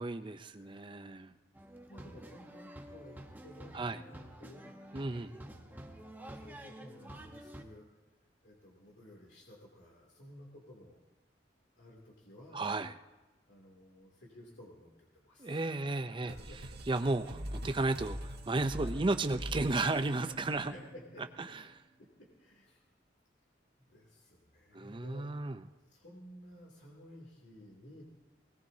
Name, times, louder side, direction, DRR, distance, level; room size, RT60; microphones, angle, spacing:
voice 1, 0.0-1.3 3.7-4.0 4.9-5.3 12.5-12.9 15.4-16.3 16.9-20.7 21.5-21.6 24.7-25.6, right 2 dB, 25° right, 9 dB, 0.6 m, -33 dB
voice 2, 0.6-1.1 1.9-4.7 5.0-7.8 8.4-11.0 11.8-12.7 13.5-15.7 16.0-16.8 18.8-19.1 20.2-21.4 22.0-22.1 22.4-22.8 23.8-25.6 25.9-28.0, left 1 dB, 70° left, -3 dB, 2.8 m, -54 dB
sound 1, 1.5-7.6, right 1 dB, 10° right, 1.0 m, -50 dB
sound 2, 16.3-21.6, equal, 60° right, 1.7 m, -43 dB
20.5 x 19.0 x 2.8 m, 1.1 s
head